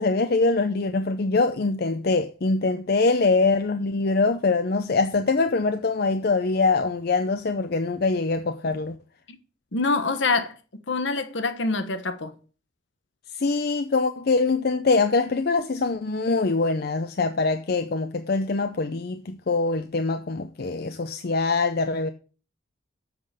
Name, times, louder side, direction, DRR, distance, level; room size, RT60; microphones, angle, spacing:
voice 1, 0.0-9.0 13.3-22.1, left 3 dB, 50° left, 0.5 m, -23 dB
voice 2, 9.7-12.3, left 3 dB, 65° left, 1.1 m, -26 dB
7.5 x 5.8 x 6.5 m
head